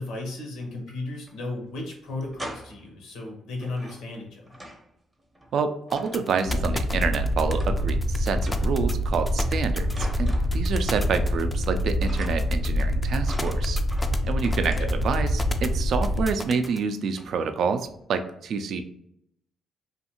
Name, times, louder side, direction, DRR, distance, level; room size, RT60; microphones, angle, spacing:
voice 1, 0.0-4.6 14.7-15.0, left 2 dB, 90° left, 0 dB, 0.9 m, -35 dB
sound 1, 0.7-1.4 1.6-1.7 2.1-2.9 3.6-4.9 5.2-6.9 7.6-8.1 8.3-8.8 9.4-11.1 11.3-11.7 12.0-12.6 13.2-15.2 16.0-16.1 16.6-16.9 17.2-17.4 17.8-18.1, right 1 dB, 15° right, 0.6 m, -44 dB
voice 2, 5.5-13.8 14.2-18.8, right 5 dB, 65° right, 8 dB, 0.3 m, -28 dB
sound 2, 5.9-16.8, left 2 dB, 15° left, 0.3 m, -36 dB
sound 3, 6.5-16.3, equal, 65° left, 0.5 m, -25 dB
2.6 x 2.4 x 2.8 m, 0.75 s
cardioid pair, 90°, 0 cm